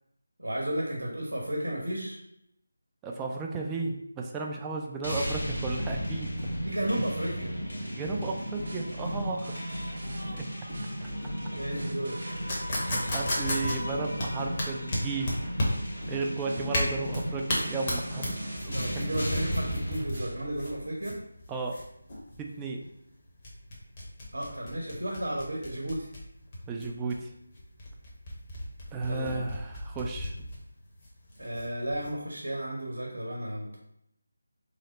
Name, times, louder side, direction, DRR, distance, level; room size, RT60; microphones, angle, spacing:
voice 1, 0.4-2.2 6.6-7.5 11.5-12.2 18.7-21.2 24.3-26.1 29.0-29.4 31.4-33.8, right 1 dB, 80° right, -1 dB, 0.8 m, -33 dB
voice 2, 3.0-6.5 7.9-9.6 10.3-10.4 12.9-15.3 16.1-18.7 21.5-21.8 22.4-22.8 26.7-27.3 28.9-30.3, right 3 dB, 10° right, 1 dB, 0.3 m, -34 dB
sound 1, 5.0-20.0, equal, 65° left, 1.2 m, -35 dB
sound 2, 8.6-14.7 15.2-20.8, right 1 dB, 55° right, 0.6 m, -43 dB
sound 3, 12.5-32.1, left 1 dB, 30° left, 0.9 m, -34 dB
3.2 x 2.0 x 3.9 m, 0.78 s
figure-of-eight pair, 160°, 0 cm